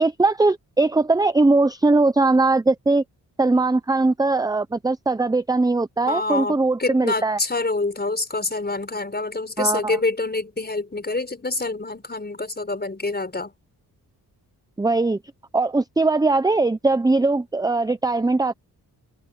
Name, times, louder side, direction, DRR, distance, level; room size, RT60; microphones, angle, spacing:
voice 1, 0.0-3.0 3.4-7.4 9.6-10.0 14.8-15.2 15.5-18.5, right 3 dB, 10° right, 0.7 m, -20 dB
voice 2, 6.1-13.5, left 3 dB, 25° left, 5.2 m, -26 dB
open air
cardioid pair, 75°, 39 cm